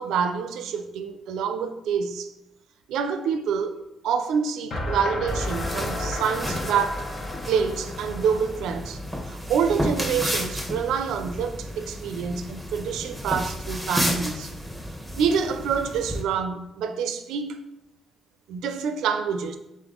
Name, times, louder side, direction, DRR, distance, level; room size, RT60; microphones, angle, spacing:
voice 1, 0.0-2.3 2.9-3.8 4.0-7.0 7.5-9.0 9.3-14.5 15.2-17.6 18.5-19.6, right 6 dB, 85° right, 0.4 m, -27 dB
sound 1, 4.7-9.6, left 1 dB, 60° left, 0.7 m, -34 dB
sound 2, 5.3-16.2, equal, 5° left, 0.9 m, -32 dB
3.6 x 3.5 x 3.7 m
cardioid pair, 90°, 0 cm